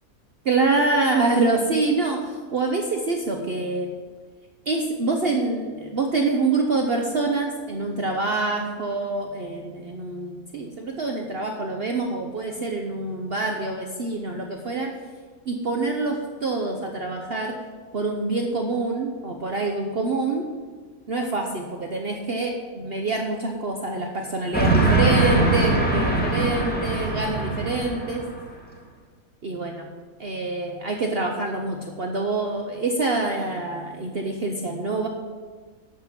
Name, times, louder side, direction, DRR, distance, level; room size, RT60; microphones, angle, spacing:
voice 1, 0.5-3.9 4.7-14.9 15.5-17.6 17.9-20.5 21.1-28.2 29.4-29.9 30.2-35.1, right 3 dB, 50° right, 2 dB, 1.0 m, -26 dB
Train, 24.5-28.5, right 2 dB, 5° left, 1.6 m, -22 dB
11.5 x 6.1 x 5.9 m, 1.5 s
omnidirectional pair, 1.5 m